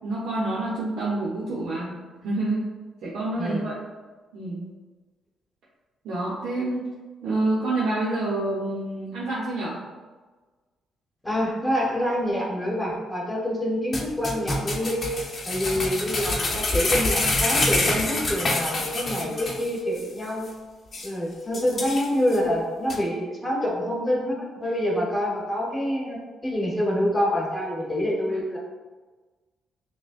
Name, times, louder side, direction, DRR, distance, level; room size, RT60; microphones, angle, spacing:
voice 1, 0.0-1.9 2.2-2.7 3.0-3.8 4.3-4.7 6.0-6.9 7.2-9.8 21.7-21.8 22.9-23.0 28.3-28.4, right 2 dB, 75° right, -7 dB, 0.8 m, -27 dB
voice 2, 11.2-15.1 15.4-20.5 21.0-28.6, equal, 10° left, -3 dB, 1.1 m, -26 dB
sound 1, 13.9-19.7 20.0-20.1 20.5-20.6 20.9-21.1 21.5-22.4 22.9-23.0, left 2 dB, 40° left, 0.7 m, -26 dB
6.0 x 2.2 x 2.5 m, 1.3 s
cardioid pair, 90°, 0 cm